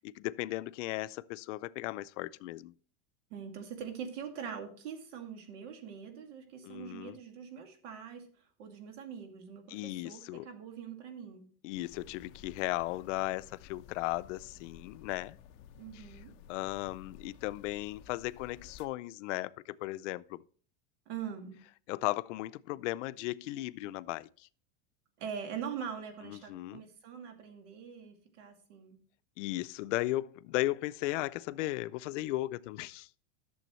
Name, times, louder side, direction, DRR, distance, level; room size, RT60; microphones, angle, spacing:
voice 1, 0.2-2.7 6.6-7.2 9.7-10.5 11.6-15.4 15.9-16.0 16.5-20.4 21.9-24.5 26.3-26.8 29.4-33.1, left 17 dB, 85° left, 0.6 m, -36 dB
voice 2, 3.3-8.3 8.6-11.5 15.8-16.3 21.1-21.6 25.2-29.0, right 7 dB, 80° right, 2.3 m, -43 dB
sound 1, 11.7-18.9, left 8 dB, 45° left, 0.7 m, -54 dB
12.0 x 7.0 x 3.1 m
supercardioid pair, 155°, 36 cm